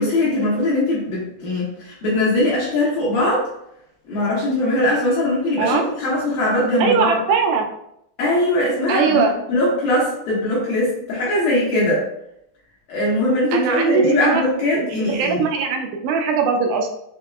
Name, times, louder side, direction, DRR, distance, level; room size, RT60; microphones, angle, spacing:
voice 1, 0.0-3.5 4.1-7.2 8.2-9.2 9.5-12.0 12.9-15.5, left 1 dB, 70° left, -7 dB, 2.3 m, -20 dB
voice 2, 6.8-7.7 8.9-9.3 13.5-14.4 14.7-16.9, right 5 dB, 85° right, 3 dB, 2.6 m, -20 dB
6.7 x 2.8 x 2.3 m, 0.79 s
omnidirectional pair, 5.0 m